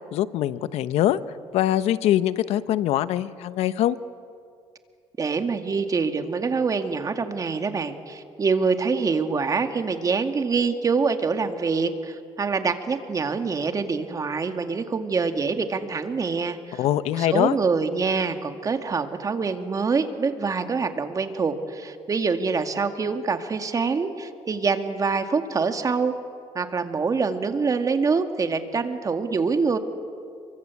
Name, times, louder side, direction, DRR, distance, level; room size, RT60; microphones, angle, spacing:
voice 1, 0.1-1.2 1.5-4.0 16.8-17.6, left 12 dB, 80° left, 14 dB, 1.0 m, -23 dB
voice 2, 5.2-16.8 17.2-26.1 26.5-29.8, right 4 dB, 35° right, 7 dB, 2.2 m, -25 dB
29.5 x 24.0 x 8.5 m, 2.3 s
cardioid pair, 105°, 10 cm